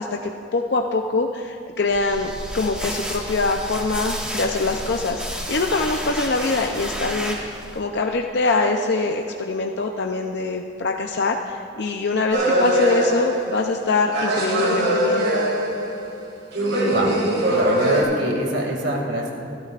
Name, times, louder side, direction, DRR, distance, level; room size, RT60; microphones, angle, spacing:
voice 1, 0.0-15.3, left 3 dB, 65° left, 2 dB, 0.6 m, -24 dB
sound 1, 1.8-7.8, equal, 5° right, 1.6 m, -31 dB
sound 2, 12.3-13.8 14.1-16.2 16.5-18.0, right 1 dB, 90° right, 3.7 m, -21 dB
voice 2, 17.4-19.3, right 1 dB, 70° right, 0 dB, 2.4 m, -24 dB
27.0 x 12.0 x 2.5 m, 2.4 s
head